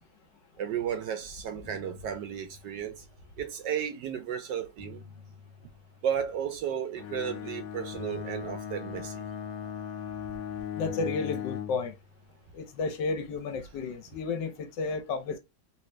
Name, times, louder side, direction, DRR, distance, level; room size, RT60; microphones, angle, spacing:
voice 1, 0.6-3.0 3.4-5.0 6.0-9.2, right 8 dB, 70° right, 1.0 m, -33 dB
sound 1, 1.0-1.2 1.5-3.8 4.5-6.9 7.9-10.4 10.9-13.4, left 5 dB, 45° left, 1.1 m, -53 dB
Bowed string instrument, 7.0-11.9, left 9 dB, 90° left, 1.4 m, -37 dB
voice 2, 10.8-11.9 12.5-15.4, left 4 dB, 70° left, 1.2 m, -32 dB
3.2 x 2.7 x 3.1 m
omnidirectional pair, 2.2 m